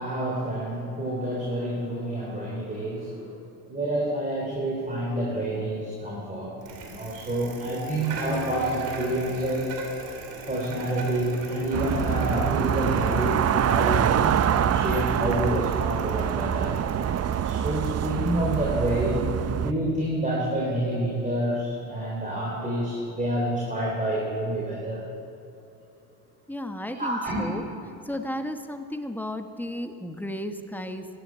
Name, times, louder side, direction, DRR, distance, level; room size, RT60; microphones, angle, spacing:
voice 1, 0.0-3.3 3.7-6.5 6.9-9.7 10.5-16.8 17.4-25.0 26.9-27.5, right 1 dB, 15° right, -4 dB, 3.7 m, -28 dB
Bicycle, 6.6-19.7, right 3 dB, 75° right, 3.0 m, -41 dB
sound 1, 11.7-19.7, right 9 dB, 35° right, 0.6 m, -25 dB
voice 2, 26.5-27.6 28.0-31.1, left 1 dB, 5° left, 6 dB, 1.3 m, -33 dB
14.0 x 10.0 x 8.8 m, 2.7 s
supercardioid pair, 80°, 44 cm